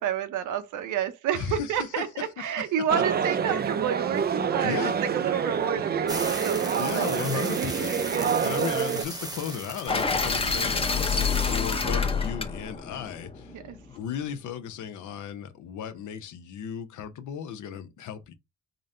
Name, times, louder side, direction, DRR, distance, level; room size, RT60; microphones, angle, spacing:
voice 1, 0.0-7.1 7.3-7.8 8.1-8.4 13.5-13.8, right 9 dB, 80° right, 0.8 m, -30 dB
voice 2, 1.3-3.0 4.6-5.0 6.8-8.0 8.4-13.6 13.9-18.3, left 8 dB, 75° left, 0.7 m, -35 dB
sound 1, 2.9-9.0, right 7 dB, 35° right, 0.4 m, -27 dB
sound 2, 6.1-11.8, right 2 dB, 15° right, 0.9 m, -37 dB
sound 3, 9.9-13.9, left 5 dB, 20° left, 0.7 m, -27 dB
3.9 x 2.1 x 3.7 m
cardioid pair, 90°, 30 cm